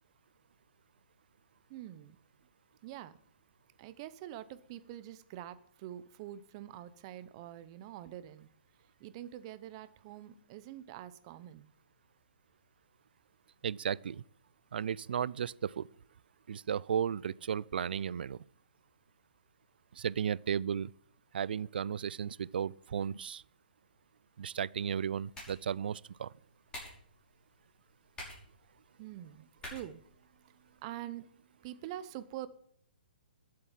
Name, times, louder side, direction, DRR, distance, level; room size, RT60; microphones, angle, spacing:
voice 1, 1.7-2.2 2.8-3.2 3.8-8.5 9.0-11.7 29.0-32.5, right 12 dB, 35° right, 0.9 m, -46 dB
voice 2, 13.6-14.2 14.7-15.9 16.5-18.4 19.9-20.9 21.3-23.4 24.4-26.3, right 8 dB, 70° right, 0.4 m, -34 dB
sound 1, 24.8-30.8, left 1 dB, 15° left, 6.0 m, -52 dB
12.0 x 7.7 x 7.5 m
hypercardioid pair, 145°, 6 cm